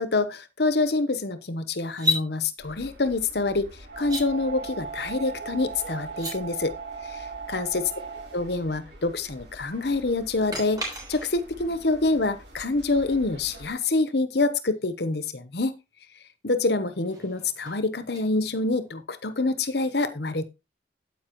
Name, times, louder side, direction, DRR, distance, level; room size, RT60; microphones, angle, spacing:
voice 1, 0.0-6.7 7.0-7.8 8.3-15.8 16.4-20.4, left 3 dB, 65° left, 1.0 m, -26 dB
sound 1, 2.0-2.3 4.0-4.3 6.1-6.4 10.5-11.5 14.7-14.8 16.8-18.9, left 1 dB, 20° right, 3.6 m, -32 dB
sound 2, 2.6-13.7, right 4 dB, 75° right, 6.7 m, -40 dB
9.5 x 8.5 x 3.0 m
head